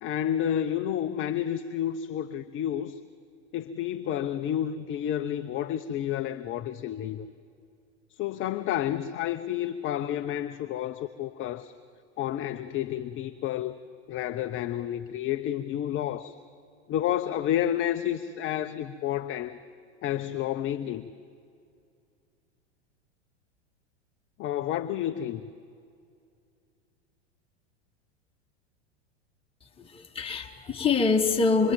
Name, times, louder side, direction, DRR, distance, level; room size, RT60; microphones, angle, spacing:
voice 1, 0.0-3.0 3.5-7.3 8.1-11.7 12.2-13.8 14.1-16.4 16.9-19.6 20.0-21.1 24.4-25.4, left 11 dB, 35° left, 9 dB, 0.9 m, -30 dB
voice 2, 29.6-31.7, left 4 dB, 15° left, 1 dB, 2.6 m, -25 dB
26.5 x 23.5 x 9.1 m, 2.4 s
hypercardioid pair, 100°, 35 cm